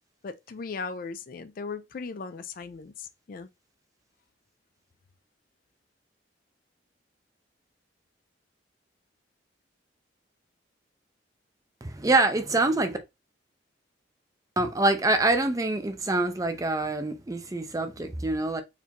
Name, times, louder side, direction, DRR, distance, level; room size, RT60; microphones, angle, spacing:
voice 1, 0.2-3.5, left 4 dB, 50° left, 0.4 m, -37 dB
voice 2, 11.8-13.0 14.6-18.6, right 2 dB, 20° right, 0.5 m, -25 dB
4.2 x 2.6 x 2.9 m
head